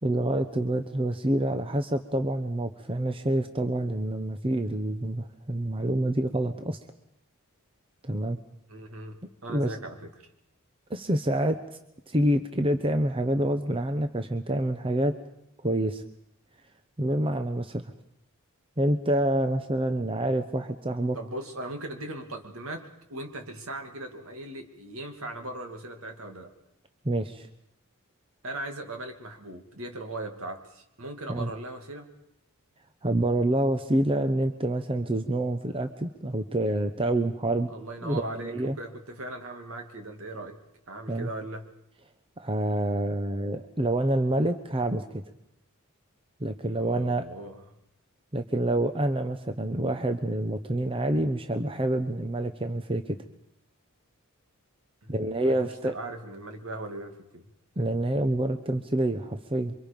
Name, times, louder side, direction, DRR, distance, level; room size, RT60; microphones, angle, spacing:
voice 1, 0.0-6.8 8.0-8.4 9.5-9.7 10.9-11.6 12.1-15.1 15.6-16.0 17.0-17.8 18.8-21.2 27.0-27.5 31.3-31.5 33.0-37.7 38.0-38.8 41.1-41.3 42.4-45.2 46.4-47.2 48.3-53.2 55.1-55.9 57.8-59.7, right 1 dB, 25° right, 8 dB, 0.9 m, -27 dB
voice 2, 8.7-10.1 21.1-26.5 28.4-32.1 37.7-41.7 46.8-47.6 55.0-55.1 55.4-55.5 55.8-57.5, right 2 dB, 65° right, 5 dB, 2.6 m, -39 dB
27.5 x 24.5 x 5.3 m, 0.80 s
head